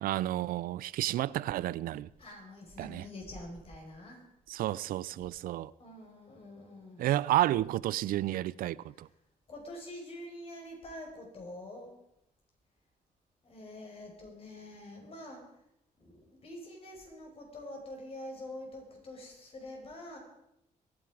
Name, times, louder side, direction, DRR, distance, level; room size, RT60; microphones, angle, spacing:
voice 1, 0.0-2.1 2.8-3.0 4.5-5.7 7.0-9.1, right 14 dB, 90° right, 0.4 m, -31 dB
voice 2, 2.2-4.2 5.8-7.1 9.5-11.9 13.4-15.4 16.0-20.2, left 1 dB, 40° left, 5.0 m, -46 dB
23.0 x 9.5 x 4.8 m
cardioid pair, 130°, 14 cm